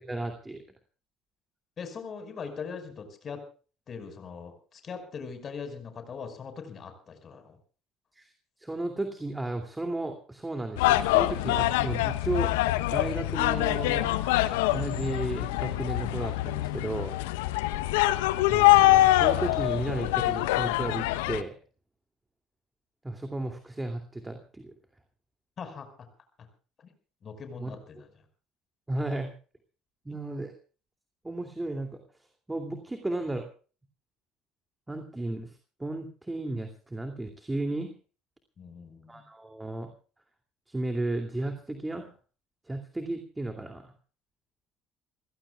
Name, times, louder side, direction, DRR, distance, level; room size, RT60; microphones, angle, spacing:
voice 1, 0.1-0.6 8.1-8.3 8.6-12.5 12.9-14.1 14.7-17.1 18.5-21.5 23.0-24.7 27.6-27.7 28.9-29.3 30.0-30.5 31.2-33.4 34.9-37.9 39.1-39.9 40.7-42.1 42.6-43.9, right 2 dB, 15° right, 5 dB, 2.7 m, -34 dB
voice 2, 1.8-3.4 3.9-7.6 25.6-25.9 26.4-26.5 26.8-26.9 27.2-28.1 30.1-30.2 38.6-39.2, left 5 dB, 45° left, 7 dB, 5.2 m, -41 dB
sound 1, 10.8-21.4, left 17 dB, 80° left, 0.8 m, -24 dB
29.5 x 16.0 x 2.4 m, 0.39 s
hypercardioid pair, 60°, 0 cm